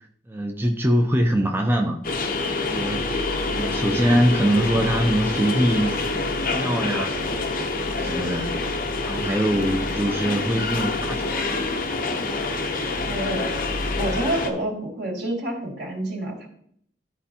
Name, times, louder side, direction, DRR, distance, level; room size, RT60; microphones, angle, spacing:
voice 1, 0.3-2.0 2.7-3.0 3.5-6.0 6.4-7.2 7.9-8.5 9.0-11.4, equal, 10° right, 2 dB, 0.6 m, -23 dB
sound 1, 2.0-14.5, left 3 dB, 50° left, 0.8 m, -26 dB
voice 2, 13.1-13.5 14.0-16.5, right 1 dB, 80° right, -2 dB, 2.4 m, -28 dB
13.0 x 4.5 x 2.9 m, 0.66 s
head